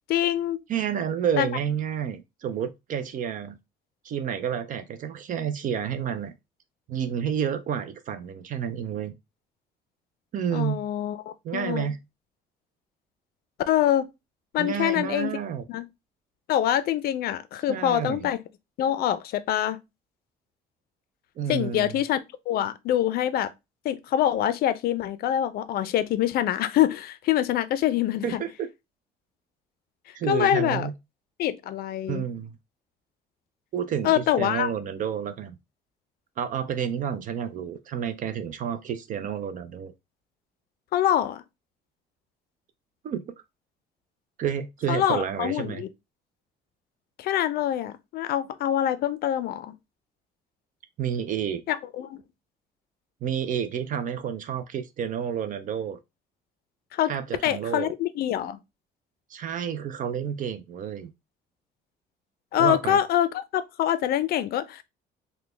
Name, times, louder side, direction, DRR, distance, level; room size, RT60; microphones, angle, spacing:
voice 1, 0.1-0.6 1.4-1.5 10.5-11.9 13.7-14.1 14.5-15.4 15.7-15.9 16.5-18.4 18.8-19.8 21.5-22.2 22.5-23.5 23.8-28.4 30.3-30.9 31.4-32.3 34.0-34.7 40.9-41.4 44.9-45.9 47.2-49.7 51.7-52.2 56.9-57.1 57.4-58.6 62.5-64.8, left 11 dB, 65° left, 0.4 m, -25 dB
voice 2, 0.7-3.6 4.0-6.3 6.9-9.1 10.3-10.8 11.4-12.0 14.6-15.6 17.7-18.3 21.4-22.0 28.2-28.7 30.1-30.9 32.1-32.5 33.7-35.5 36.4-39.9 43.0-43.2 44.4-45.8 51.0-51.6 53.2-56.0 57.1-57.9 59.3-61.1 62.6-63.0, right 8 dB, 50° right, 0.4 m, -30 dB
3.9 x 2.2 x 3.2 m
cardioid pair, 110°, 17 cm